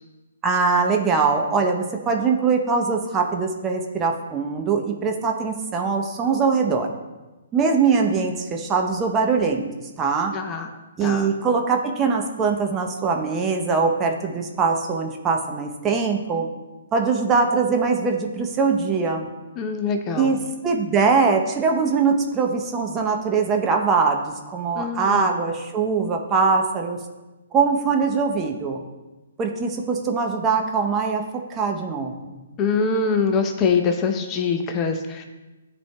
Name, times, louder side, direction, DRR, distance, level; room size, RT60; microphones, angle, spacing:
voice 1, 0.4-6.9 7.5-9.7 10.0-10.3 11.0-16.5 16.9-19.3 20.2-20.4 20.6-27.0 27.5-28.8 29.4-32.4, right 5 dB, 20° right, 2 dB, 0.8 m, -22 dB
voice 2, 10.3-10.7 11.0-11.3 19.6-20.3 24.7-25.3 32.6-35.2, left 5 dB, 25° left, 5 dB, 0.7 m, -23 dB
13.0 x 4.4 x 2.3 m, 1.1 s
figure-of-eight pair, 130°, 0 cm